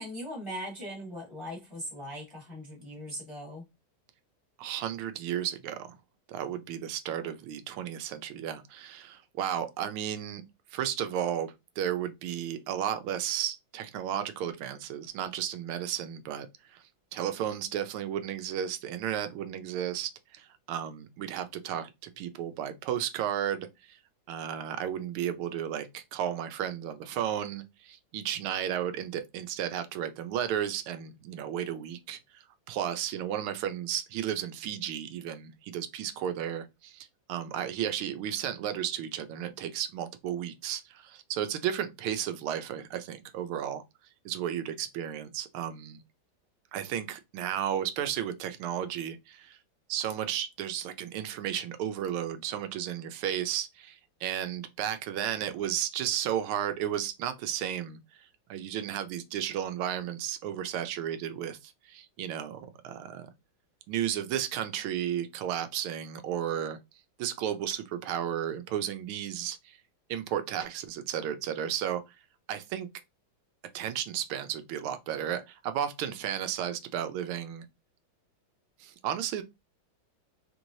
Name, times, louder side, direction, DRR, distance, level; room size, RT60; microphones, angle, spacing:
voice 1, 0.0-3.6, equal, 20° left, 1.0 m, -40 dB
voice 2, 4.6-5.9 6.3-10.4 10.7-16.5 16.7-16.8 17.1-24.0 24.3-32.2 32.7-43.8 44.2-46.0 46.7-49.6 49.9-58.0 58.5-63.3 63.9-66.8 67.2-69.8 70.1-72.0 72.5-72.9 73.7-77.6 78.8-79.4, right 10 dB, 90° right, 1.5 m, -33 dB
4.2 x 3.0 x 2.6 m
omnidirectional pair, 2.3 m